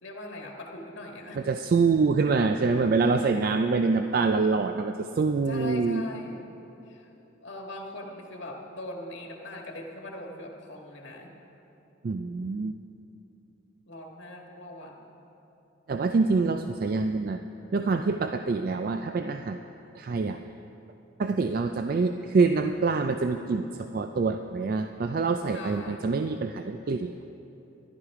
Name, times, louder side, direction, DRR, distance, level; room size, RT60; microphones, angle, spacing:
voice 1, 0.0-1.4 5.4-6.5 6.8-7.1 7.4-11.3 13.9-15.3 25.5-26.2, left 1 dB, 65° left, 0 dB, 1.7 m, -41 dB
voice 2, 1.4-6.0 12.0-12.7 15.9-17.4 17.7-19.6 19.9-20.4 21.2-27.1, right 4 dB, 45° right, 7 dB, 0.3 m, -25 dB
13.5 x 11.5 x 4.9 m, 3.0 s
head